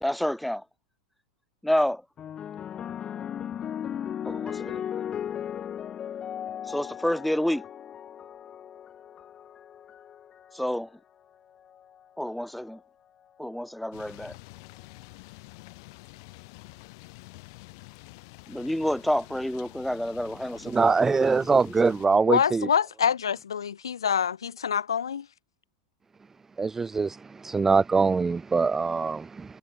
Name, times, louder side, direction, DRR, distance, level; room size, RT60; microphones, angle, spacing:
voice 1, 0.0-0.6 1.6-2.0 4.2-4.8 6.7-7.6 10.5-10.9 12.2-12.8 13.4-14.3 18.5-21.9, left 1 dB, ahead, 1.0 m, -29 dB
sound 1, 2.2-10.7 11.6-12.0, left 9 dB, 30° left, 1.8 m, -37 dB
sound 2, 13.9-22.1, left 26 dB, 55° left, 3.6 m, -48 dB
voice 2, 20.7-22.7 26.6-27.2 27.4-29.6, right 4 dB, 15° right, 0.5 m, -23 dB
voice 3, 22.3-25.3, left 7 dB, 80° left, 0.8 m, -26 dB
figure-of-eight pair, 90°, 2 cm